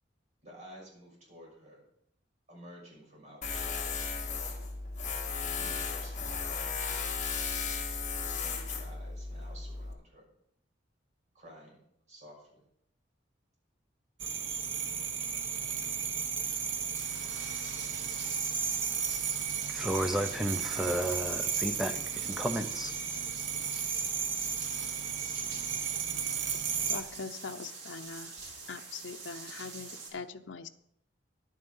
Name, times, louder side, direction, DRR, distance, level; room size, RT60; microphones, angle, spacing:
voice 1, 0.4-1.8 2.5-4.3 5.4-7.4 8.2-10.4 11.3-12.7, equal, 40° right, 6.2 m, -53 dB
Tools, 3.4-9.9, left 5 dB, 40° left, 1.7 m, -35 dB
sound 1, 14.2-27.0, right 7 dB, 80° right, 1.2 m, -34 dB
sound 2, 15.8-15.9 16.2-30.1, right 4 dB, 60° right, 3.8 m, -45 dB
voice 2, 19.7-23.0, equal, ahead, 0.6 m, -33 dB
voice 3, 26.9-28.3 28.7-30.7, left 4 dB, 80° left, 0.7 m, -42 dB
11.0 x 9.5 x 5.5 m
head